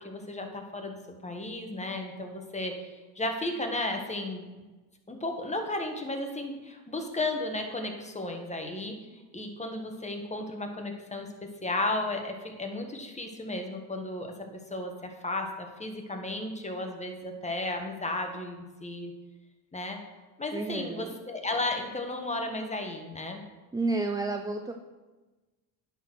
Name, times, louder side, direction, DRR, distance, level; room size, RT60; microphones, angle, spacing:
voice 1, 0.0-4.4 5.1-11.3 11.6-19.1 19.7-20.0 20.4-23.4, left 2 dB, 15° left, 3 dB, 1.6 m, -34 dB
voice 2, 20.5-21.2 23.7-24.7, right 3 dB, 10° right, 5 dB, 0.4 m, -31 dB
9.9 x 4.5 x 6.3 m, 1.2 s
supercardioid pair, 90°, 47 cm